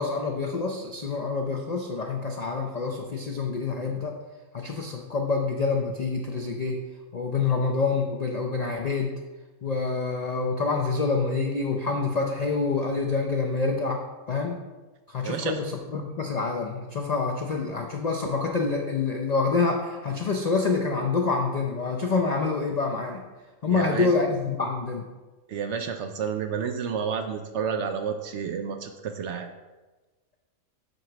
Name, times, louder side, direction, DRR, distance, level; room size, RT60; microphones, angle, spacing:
voice 1, 0.0-4.1 4.5-6.8 7.1-9.1 9.6-14.0 14.3-14.6 15.1-23.2 23.6-25.1, left 4 dB, 75° left, 2 dB, 0.3 m, -27 dB
voice 2, 15.2-15.6 23.7-24.1 25.5-29.5, right 6 dB, 65° right, 6 dB, 0.7 m, -30 dB
7.9 x 3.0 x 5.9 m, 1.2 s
omnidirectional pair, 1.5 m